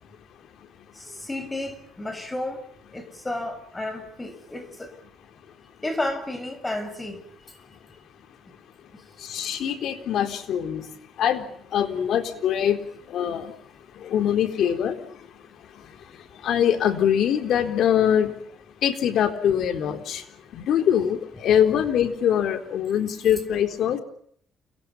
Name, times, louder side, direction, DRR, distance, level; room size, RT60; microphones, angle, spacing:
voice 1, 0.9-2.6 2.9-4.9 5.8-7.2 7.5-7.6, left 1 dB, 15° left, 10 dB, 7.1 m, -32 dB
voice 2, 9.2-10.9 11.2-13.5 13.9-15.3 15.7-18.3 18.8-20.3 20.5-24.0, left 9 dB, 75° left, 7 dB, 3.9 m, -23 dB
29.5 x 23.5 x 7.4 m, 0.65 s
cardioid pair, 90°, 0 cm